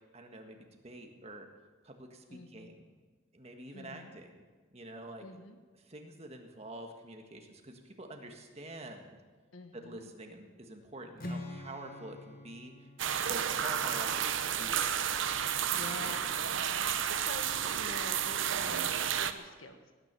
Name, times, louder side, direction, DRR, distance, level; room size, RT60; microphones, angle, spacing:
voice 1, 0.1-0.6 0.8-1.5 1.8-2.9 3.3-4.4 4.7-5.3 5.8-9.2 9.7-15.1, right 1 dB, 30° right, 3 dB, 1.7 m, -47 dB
voice 2, 2.3-2.7 3.7-4.2 5.2-5.6 9.5-10.1 15.7-17.4 17.7-19.9, left 2 dB, 80° left, 6 dB, 1.6 m, -47 dB
Strum, 11.2-15.3, left 1 dB, 45° left, 1.6 m, -46 dB
sound 1, 13.0-19.3, right 8 dB, 70° right, 0.8 m, -31 dB
18.0 x 9.9 x 6.9 m, 1.3 s
head